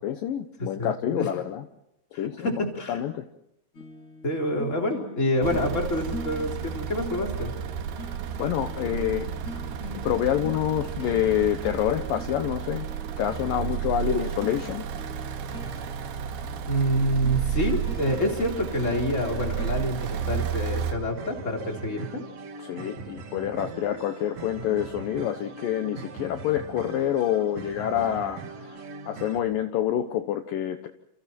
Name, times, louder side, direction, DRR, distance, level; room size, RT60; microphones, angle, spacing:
voice 1, 0.0-1.7 2.2-2.5 2.9-3.2 8.4-9.3 10.0-12.9 13.2-14.8 22.6-30.9, left 11 dB, 70° left, 7 dB, 2.6 m, -27 dB
voice 2, 0.6-1.3 2.1-3.0 4.2-7.5 14.1-14.2 16.7-22.2, equal, 20° left, 2 dB, 3.8 m, -27 dB
sound 1, 3.7-19.7, left 2 dB, 45° left, 7.3 m, -44 dB
sound 2, 5.4-20.9, right 9 dB, 80° right, 3.5 m, -32 dB
sound 3, 17.6-29.4, right 5 dB, 50° right, 2.6 m, -41 dB
29.5 x 28.5 x 4.5 m, 0.79 s
omnidirectional pair, 4.6 m